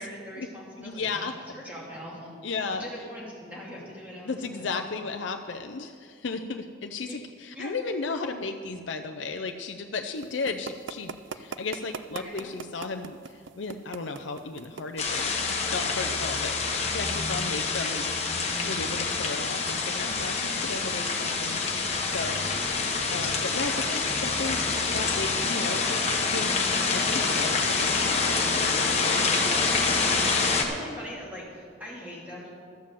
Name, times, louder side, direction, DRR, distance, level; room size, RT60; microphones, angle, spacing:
voice 1, 0.0-4.7 7.1-7.2 7.5-7.8 12.1-12.6 23.9-24.1 29.3-29.8 30.5-32.5, equal, 10° right, -6 dB, 2.6 m, -42 dB
voice 2, 0.8-1.3 2.4-2.9 4.3-18.1 18.6-22.5 23.1-24.6 24.9-26.0 26.3-26.5 26.9-29.5, left 4 dB, 75° left, 6 dB, 0.6 m, -35 dB
sound 1, 10.2-15.3, right 6 dB, 75° right, 0.5 m, -39 dB
sound 2, 15.0-30.6, left 4 dB, 35° left, 1.3 m, -26 dB
12.5 x 7.4 x 7.5 m, 2.2 s
head